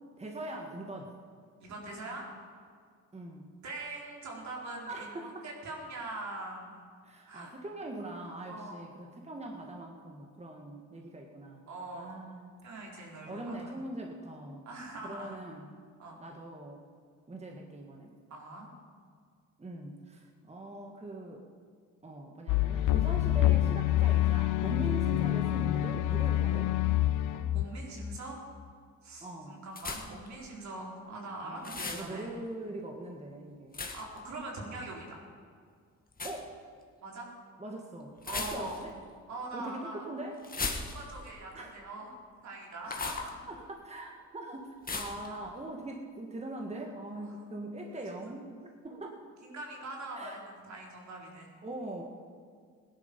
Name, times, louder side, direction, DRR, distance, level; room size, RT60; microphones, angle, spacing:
voice 1, 0.2-1.1 3.1-3.5 4.9-5.5 7.0-11.6 11.9-12.6 13.3-14.7 15.0-15.7 16.2-16.8 17.3-18.1 19.6-21.4 22.0-26.7 29.2-29.6 31.4-33.9 36.2-36.5 37.6-38.1 38.5-38.9 39.5-40.4 41.5-41.7 43.5-48.5 48.8-49.2 50.1-50.4 51.6-52.0, right 2 dB, 20° right, 2 dB, 1.6 m, -42 dB
voice 2, 1.6-2.3 3.6-6.7 7.3-7.5 8.5-8.8 11.7-12.2 12.6-13.6 14.7-15.4 16.0-16.2 18.3-18.7 27.3-28.4 29.0-32.3 33.9-35.2 37.0-37.3 38.3-38.8 39.3-40.0 40.8-42.2 42.4-43.5 45.2-45.4 47.4-47.5 47.9-48.2 49.4-51.5, right 2 dB, 65° right, -2 dB, 4.0 m, -42 dB
sound 1, 22.5-28.2, left 14 dB, 85° left, 0.6 m, -27 dB
sound 2, 29.7-30.3 31.6-32.1 33.7-34.2 36.1-36.4 38.2-38.9 40.4-41.3 42.8-43.3 44.8-45.3, left 4 dB, 30° left, 1.9 m, -37 dB
17.5 x 11.0 x 5.2 m, 2.1 s
cardioid pair, 90°, 30 cm